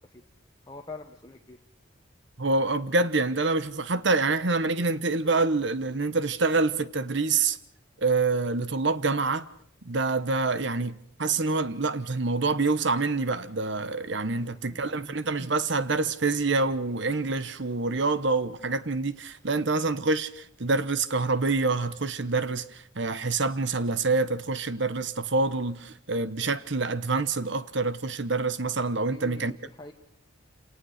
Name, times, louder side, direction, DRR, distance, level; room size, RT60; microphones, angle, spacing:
voice 1, 0.7-1.6 14.3-15.2 29.1-29.9, left 2 dB, 20° left, 1.3 m, -45 dB
voice 2, 2.4-7.6 8.0-9.5 9.8-29.5, right 3 dB, 60° right, 1.1 m, -26 dB
27.5 x 18.5 x 6.6 m
head